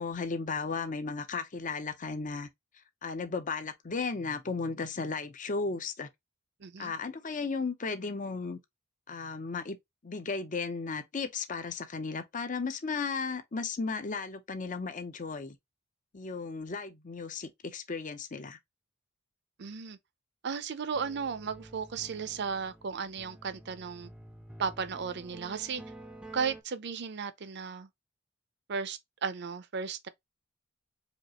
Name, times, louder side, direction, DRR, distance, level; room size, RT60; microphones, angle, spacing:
voice 1, 0.0-2.5 3.0-6.1 6.8-8.6 9.1-9.8 10.0-15.6 16.1-18.6, left 4 dB, 40° left, 0.6 m, -35 dB
voice 2, 6.6-6.9 19.6-20.0 20.4-24.1 24.6-25.8 26.3-27.9 28.7-30.1, right 6 dB, 55° right, 0.6 m, -35 dB
sound 1, 20.9-26.6, right 1 dB, 5° right, 0.5 m, -50 dB
5.1 x 2.4 x 2.9 m
head